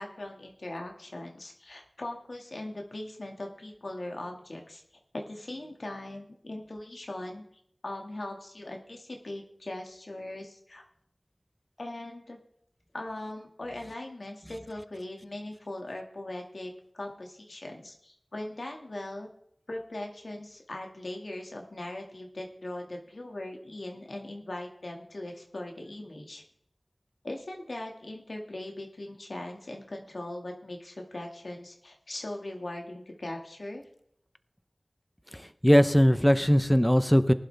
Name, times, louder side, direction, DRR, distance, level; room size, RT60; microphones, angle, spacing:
voice 1, 0.0-4.8 5.1-7.4 7.8-10.8 11.8-12.4 12.9-19.3 19.7-26.4 27.2-33.8, left 1 dB, 80° left, 2 dB, 2.1 m, -40 dB
voice 2, 35.3-37.3, equal, 5° left, 12 dB, 0.8 m, -20 dB
19.0 x 11.5 x 3.5 m, 0.71 s
wide cardioid pair, 55°, 0 cm